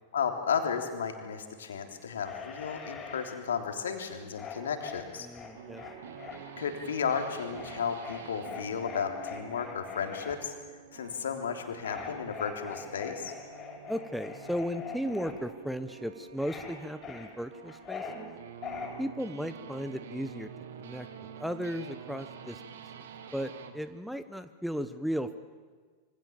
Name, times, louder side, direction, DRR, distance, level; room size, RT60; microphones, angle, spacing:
voice 1, 0.1-5.3 6.6-10.5 10.9-13.3, left 7 dB, 65° left, 5 dB, 3.3 m, -33 dB
sound 1, 2.2-3.4 4.3-6.4 7.5-10.4 11.8-15.3 16.4-16.7 17.0-18.2 18.6-18.9, left 6 dB, 25° left, 6.9 m, -43 dB
voice 2, 5.2-5.8 13.9-18.3 19.0-20.5 20.8-21.1 21.4-22.6 23.3-25.4, equal, ahead, 12 dB, 1.0 m, -35 dB
sound 2, 5.5-23.8, right 7 dB, 60° right, 2.1 m, -48 dB
26.5 x 24.5 x 7.3 m, 1.5 s
figure-of-eight pair, 90°, 0 cm